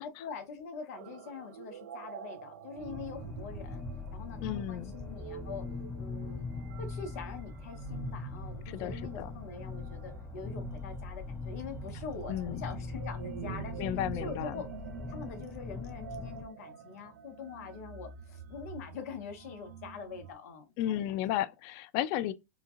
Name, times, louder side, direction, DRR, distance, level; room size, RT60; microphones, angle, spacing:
voice 1, 0.0-3.8 4.1-5.6 5.9-6.5 6.8-13.9 14.2-14.6 15.1-21.0, left 5 dB, 70° left, 0.9 m, -44 dB
sound 1, 0.9-20.3, right 9 dB, 80° right, 0.5 m, -47 dB
sound 2, 2.8-16.4, left 4 dB, 15° left, 0.9 m, -41 dB
voice 2, 4.4-4.9 8.7-9.3 12.3-12.6 13.8-14.6 20.8-22.3, left 12 dB, 50° left, 0.3 m, -33 dB
2.9 x 2.3 x 2.5 m
hypercardioid pair, 95°, 9 cm